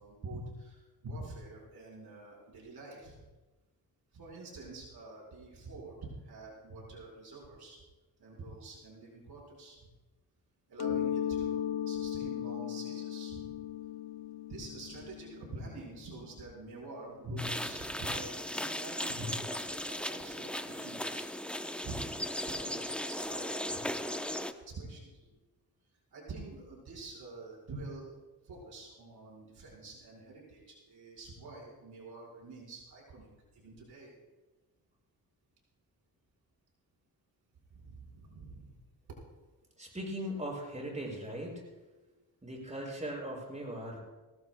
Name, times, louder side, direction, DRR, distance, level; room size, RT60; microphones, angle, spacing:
voice 1, 0.0-3.2 4.1-7.8 8.2-9.9 10.7-13.5 14.5-21.3 21.8-25.2 26.1-28.1 28.4-34.1 37.7-38.8, right 2 dB, 80° right, -3 dB, 5.1 m, -46 dB
Mallet percussion, 10.8-16.3, left 10 dB, 90° left, 0.5 m, -37 dB
sound 1, 17.4-24.5, left 1 dB, 5° left, 0.7 m, -37 dB
voice 2, 39.8-41.6 42.4-44.0, equal, 20° right, -2 dB, 6.3 m, -39 dB
23.5 x 18.5 x 2.3 m, 1.2 s
cardioid pair, 85°, 38 cm